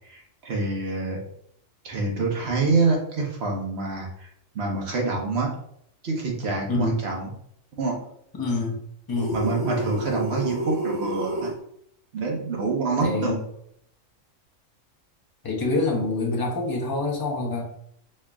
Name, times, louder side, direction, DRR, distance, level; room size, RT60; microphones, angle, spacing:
voice 1, 0.1-1.2 1.8-4.3 4.5-5.5 6.0-7.3 7.8-8.0 9.3-11.5 12.1-13.4, right 3 dB, 55° right, 0 dB, 1.1 m, -26 dB
voice 2, 6.7-7.0 8.4-8.8 9.1-9.4 13.0-13.4 15.4-17.6, left 3 dB, 25° left, 0 dB, 0.5 m, -26 dB
sound 1, 9.1-11.5, right 1 dB, 35° right, 1.6 m, -29 dB
4.3 x 2.9 x 2.4 m, 0.69 s
omnidirectional pair, 1.4 m